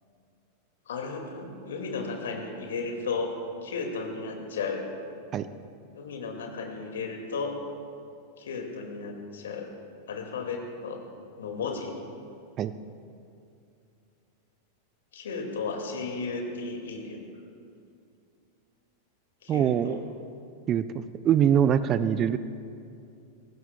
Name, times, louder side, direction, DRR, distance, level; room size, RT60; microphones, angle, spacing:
voice 1, 0.9-3.3 3.6-4.9 6.0-7.6 8.4-9.7 10.1-11.0 11.4-11.9 15.1-17.2 19.4-20.0, left 4 dB, 60° left, 3 dB, 2.2 m, -34 dB
voice 2, 19.5-20.0 20.7-22.4, right 9 dB, 30° right, 13 dB, 0.5 m, -23 dB
23.5 x 19.5 x 2.3 m, 2.5 s
figure-of-eight pair, 90°, 0 cm